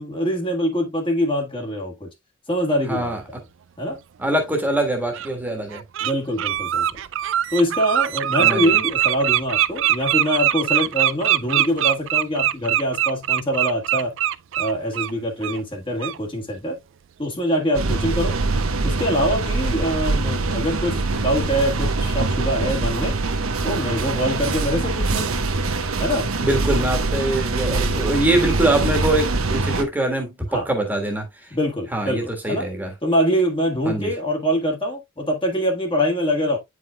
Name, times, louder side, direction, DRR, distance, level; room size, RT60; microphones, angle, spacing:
voice 1, 0.0-2.1 2.5-3.1 3.8-4.0 6.0-7.0 7.5-14.1 14.6-16.8 17.2-18.4 18.8-23.2 23.6-25.3 26.0-26.3 30.5-30.7 31.5-32.7 33.0-36.6, equal, 25° left, 1.4 m, -24 dB
voice 2, 2.9-3.2 4.2-5.8 8.4-8.6 26.4-31.3 31.9-32.9 33.8-34.1, right 1 dB, 10° right, 1.5 m, -23 dB
Bird, 4.3-4.4 5.1-5.3 5.7-6.1 6.4-15.1 15.4-15.6 16.0-16.2, right 12 dB, 60° right, 0.4 m, -22 dB
sound 1, 17.7-29.8, right 3 dB, 80° right, 1.0 m, -23 dB
9.2 x 4.9 x 2.2 m
head